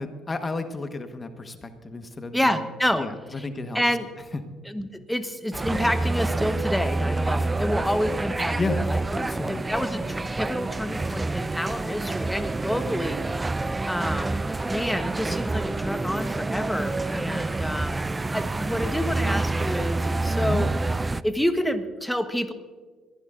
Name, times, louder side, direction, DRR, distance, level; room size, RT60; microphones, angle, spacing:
voice 1, 0.0-2.6 2.9-3.8 8.6-8.8 9.1-9.6 20.4-20.6, left 3 dB, 30° left, 8 dB, 1.3 m, -32 dB
voice 2, 2.3-3.0 3.4-3.5 3.7-4.1 4.7-13.3 13.9-14.4 14.7-18.0 18.3-20.7 21.2-22.5, equal, 5° left, 9 dB, 1.2 m, -28 dB
sound 1, 5.5-21.2, right 2 dB, 20° right, 0.4 m, -27 dB
22.0 x 15.0 x 2.6 m, 1.5 s
hypercardioid pair, 55°, 0 cm